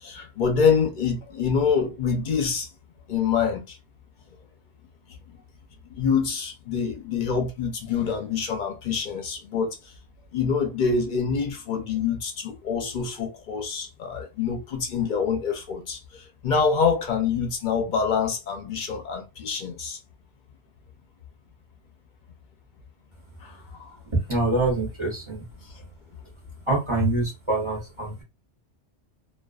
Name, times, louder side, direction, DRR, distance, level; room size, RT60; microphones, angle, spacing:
voice 1, 0.0-2.7 3.1-3.8 5.9-9.8 10.3-20.0 23.4-23.9, left 6 dB, 50° left, 0.7 m, -26 dB
voice 2, 24.1-25.5 26.7-28.2, right 2 dB, 30° right, 0.6 m, -25 dB
2.5 x 2.3 x 2.3 m
omnidirectional pair, 1.2 m